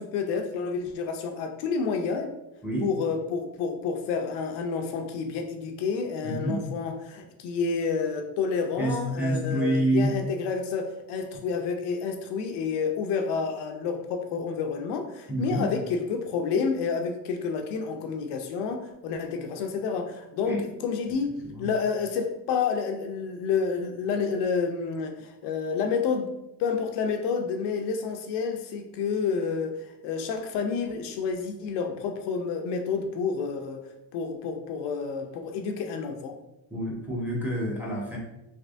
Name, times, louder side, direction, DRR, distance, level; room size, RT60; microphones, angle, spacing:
voice 1, 0.0-2.3 2.8-26.3 26.6-33.9 34.1-36.4, left 5 dB, 70° left, 4 dB, 0.5 m, -29 dB
voice 2, 6.2-6.6 8.8-10.1 15.3-15.6 20.4-20.6 21.4-21.7 36.7-38.2, right 1 dB, 5° right, -3 dB, 0.9 m, -27 dB
3.3 x 2.9 x 2.5 m, 0.92 s
cardioid pair, 100°, 43 cm